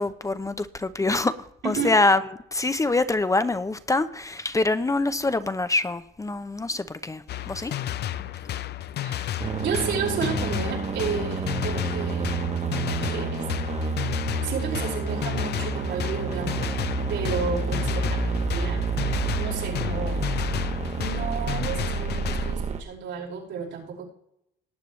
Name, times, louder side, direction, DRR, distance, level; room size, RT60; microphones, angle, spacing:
voice 1, 0.0-1.3 1.6-2.2 2.5-7.7, left 2 dB, 15° left, 0.6 m, -25 dB
voice 2, 1.6-1.9 9.0-9.3 9.6-12.4 13.0-13.5 14.4-16.7 17.1-18.8 19.3-20.3 21.0-24.0, right 6 dB, 85° right, 5.3 m, -32 dB
sound 1, 7.3-22.6, left 12 dB, 60° left, 0.6 m, -32 dB
sound 2, 9.4-22.8, right 5 dB, 35° right, 1.2 m, -29 dB
18.5 x 9.1 x 3.2 m
cardioid pair, 115°, 19 cm